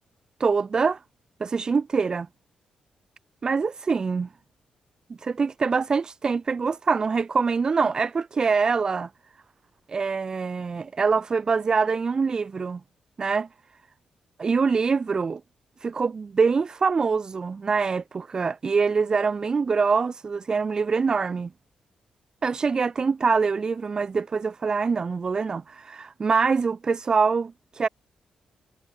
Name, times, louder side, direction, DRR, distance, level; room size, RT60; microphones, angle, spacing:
voice 1, 0.4-1.0 1.4-2.3 3.4-4.3 5.2-9.1 9.9-12.8 13.2-13.5 14.4-15.4 15.8-21.5 22.4-27.9, right 5 dB, 35° right, 3.0 m, -24 dB
cardioid pair, 115°, 2 cm